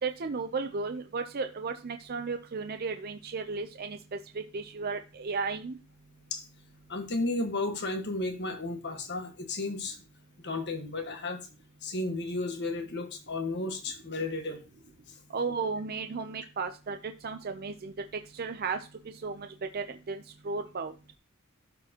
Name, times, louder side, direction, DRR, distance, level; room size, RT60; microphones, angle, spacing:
voice 1, 0.0-5.8 15.3-18.8 19.2-19.5 19.7-20.9, right 4 dB, 45° right, 6 dB, 0.5 m, -34 dB
voice 2, 6.9-10.0 10.4-11.4 11.8-14.6, left 2 dB, 55° left, 5 dB, 1.4 m, -33 dB
12.5 x 4.5 x 2.9 m, 0.30 s
head